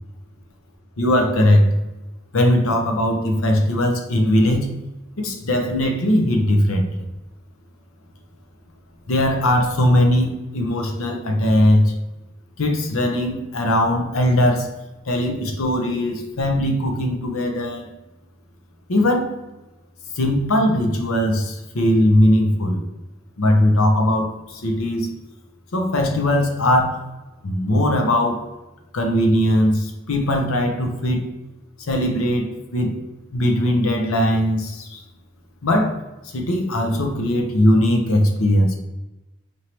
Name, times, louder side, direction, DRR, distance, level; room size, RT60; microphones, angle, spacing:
voice 1, 1.0-1.7 2.3-4.7 5.2-6.9 9.1-11.9 12.6-14.7 15.1-17.9 18.9-19.3 20.1-22.9 23.4-25.1 25.7-27.0 27.4-28.4 28.9-31.2 31.9-32.9 33.3-35.0 35.6-36.0 36.2-38.7, left 1 dB, 80° left, 4 dB, 0.7 m, -19 dB
4.4 x 2.7 x 3.0 m, 1.0 s
head